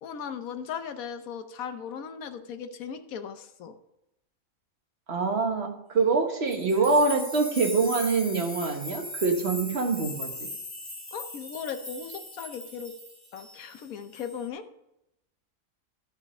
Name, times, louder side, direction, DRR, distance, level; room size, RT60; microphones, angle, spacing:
voice 1, 0.0-3.7 11.1-12.9 13.3-14.6, left 7 dB, 80° left, 8 dB, 1.3 m, -37 dB
voice 2, 5.1-10.3, right 4 dB, 50° right, 4 dB, 1.5 m, -25 dB
sound 1, 6.5-13.8 14.1-14.5, left 1 dB, 10° left, 1.9 m, -39 dB
12.0 x 5.1 x 6.3 m, 0.84 s
omnidirectional pair, 1.4 m